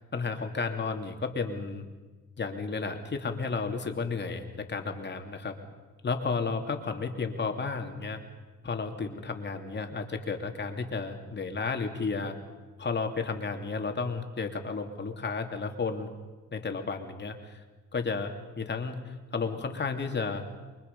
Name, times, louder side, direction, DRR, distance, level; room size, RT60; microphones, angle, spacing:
voice 1, 0.1-1.8 2.4-5.6 6.0-8.2 8.6-12.3 12.8-16.1 16.5-17.6 17.9-20.4, left 4 dB, 35° left, 4 dB, 2.9 m, -32 dB
29.0 x 23.5 x 5.5 m, 1.3 s
cardioid pair, 90°, 30 cm